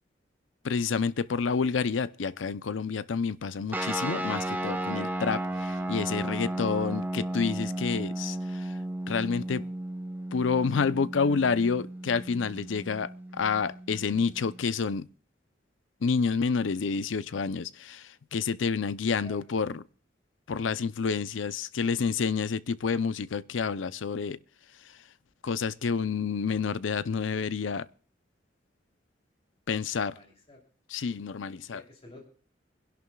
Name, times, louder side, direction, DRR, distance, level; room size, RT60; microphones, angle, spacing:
voice 1, 0.6-8.6 9.1-9.7 10.3-15.1 16.0-19.8 20.5-24.4 25.4-27.9 29.7-30.1 30.9-31.8, left 5 dB, 90° left, 0.5 m, -29 dB
sound 1, 3.7-14.6, right 1 dB, 10° right, 1.0 m, -34 dB
voice 2, 29.9-30.6 31.7-32.3, left 2 dB, 30° left, 3.0 m, -51 dB
26.0 x 11.0 x 2.3 m
head